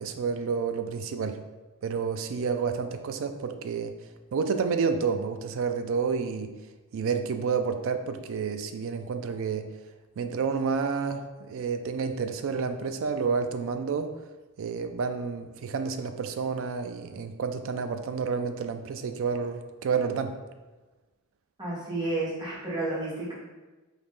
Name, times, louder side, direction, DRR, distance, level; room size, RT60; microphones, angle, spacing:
voice 1, 0.0-1.4 1.8-3.9 4.3-6.5 6.9-9.7 10.2-14.1 14.6-20.4, right 5 dB, 65° right, 8 dB, 0.4 m, -29 dB
voice 2, 21.6-23.3, right 2 dB, 20° right, -7 dB, 1.4 m, -31 dB
4.0 x 2.9 x 3.6 m, 1.2 s
head